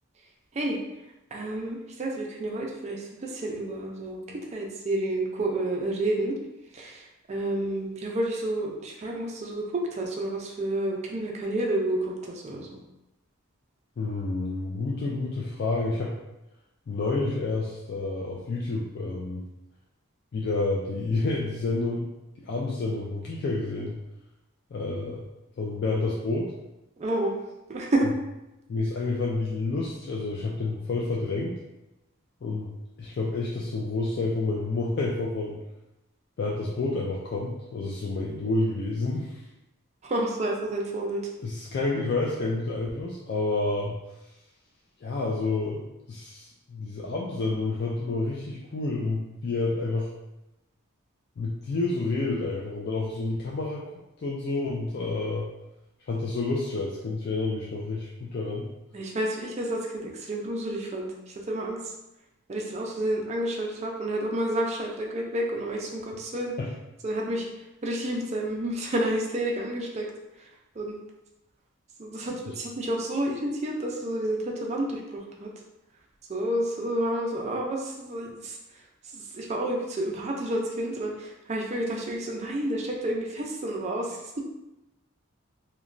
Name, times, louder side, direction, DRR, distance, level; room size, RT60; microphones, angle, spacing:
voice 1, 1.3-4.2 4.5-6.3 6.7-7.0 7.3-12.8 27.0-27.3 27.7-28.1 40.0-41.3 58.9-61.1 61.5-61.8 62.5-66.5 67.0-67.5 67.8-70.1 70.8-71.0 72.0-75.5 76.3-78.6 79.1-84.4, right 1 dB, 30° right, -1 dB, 0.4 m, -30 dB
voice 2, 14.0-16.1 16.9-19.5 20.3-22.1 22.4-24.0 24.7-25.3 25.6-26.5 28.7-31.6 32.4-32.7 33.0-35.6 36.4-39.4 41.4-44.0 45.0-50.1 51.4-53.9 54.2-55.5 56.1-58.7 66.6-66.7 72.2-72.5, left 3 dB, 50° left, -4 dB, 0.3 m, -29 dB
2.9 x 2.2 x 2.5 m, 0.94 s
head